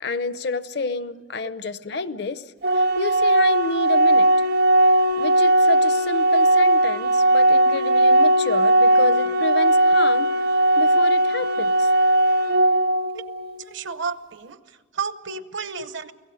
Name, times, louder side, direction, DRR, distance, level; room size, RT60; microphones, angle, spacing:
voice 1, 0.0-2.4 2.7-4.3 5.2-10.3 10.8-11.9 15.8-15.9, left 3 dB, 60° left, 14 dB, 0.7 m, -29 dB
Organ, 2.6-13.6, right 1 dB, 55° right, 0.6 m, -18 dB
voice 2, 13.6-16.1, right 5 dB, 75° right, 13 dB, 0.9 m, -32 dB
29.5 x 18.0 x 6.4 m, 1.5 s
head